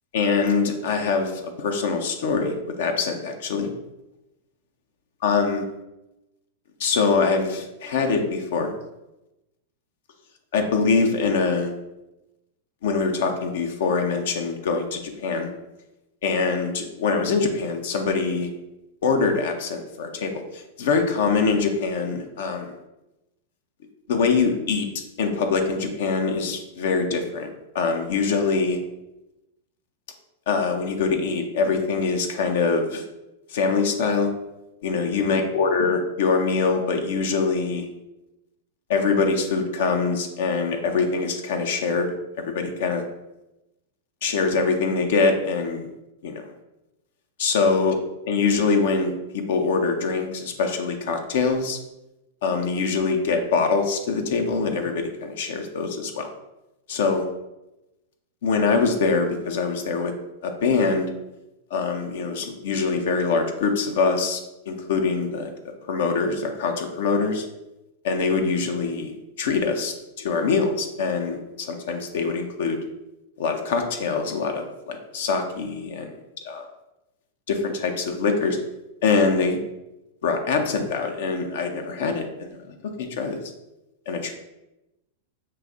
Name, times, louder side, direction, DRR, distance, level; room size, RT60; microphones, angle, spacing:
voice 1, 0.1-3.7 5.2-5.6 6.8-8.7 10.5-11.7 12.8-15.5 16.2-18.5 19.0-22.7 24.1-24.9 25.2-27.5 27.7-28.8 30.5-33.0 33.5-34.3 34.8-37.9 38.9-43.0 44.2-45.9 46.2-46.4 47.4-48.0 48.3-51.8 52.4-56.3 56.9-57.3 58.4-60.1 60.4-61.1 61.7-64.4 64.7-65.5 65.9-67.4 68.0-69.1 69.4-72.8 73.4-76.1 76.4-76.7 77.5-78.6 79.0-79.6 80.2-82.6 83.0-83.4 84.1-84.3, left 4 dB, 65° left, 4 dB, 0.5 m, -24 dB
5.6 x 2.4 x 2.5 m, 0.95 s
hypercardioid pair, 100°, 0 cm